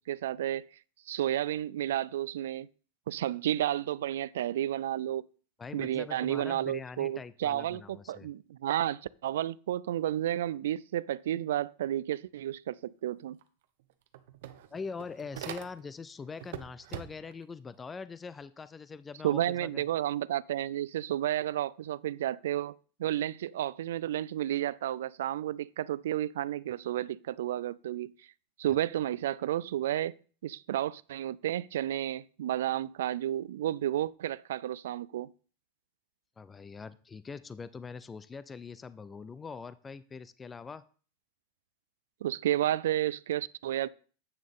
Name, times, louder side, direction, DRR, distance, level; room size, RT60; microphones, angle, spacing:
voice 1, 0.1-0.6 1.1-2.7 3.1-5.2 5.7-13.4 19.2-28.1 28.6-30.2 30.4-35.3 42.2-43.9, right 12 dB, 85° right, 0.3 m, -32 dB
voice 2, 5.6-8.3 14.7-19.9 36.4-40.8, left 5 dB, 15° left, 0.3 m, -43 dB
sound 1, 13.4-13.5 13.8-16.0 16.4-17.4, right 11 dB, 70° right, 0.8 m, -43 dB
8.6 x 6.4 x 3.6 m
supercardioid pair, 155°, 0 cm